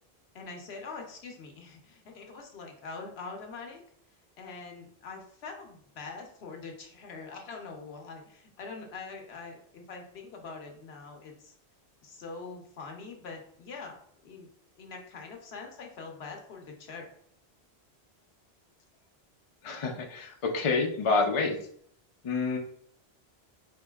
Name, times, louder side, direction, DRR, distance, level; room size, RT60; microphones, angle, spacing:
voice 1, 0.3-3.8 4.4-11.5 12.0-14.5 14.8-17.1, left 4 dB, 75° left, 2 dB, 1.0 m, -44 dB
voice 2, 19.6-21.6 22.2-22.6, left 4 dB, 45° left, 3 dB, 0.4 m, -28 dB
4.6 x 2.6 x 2.3 m, 0.63 s
omnidirectional pair, 1.1 m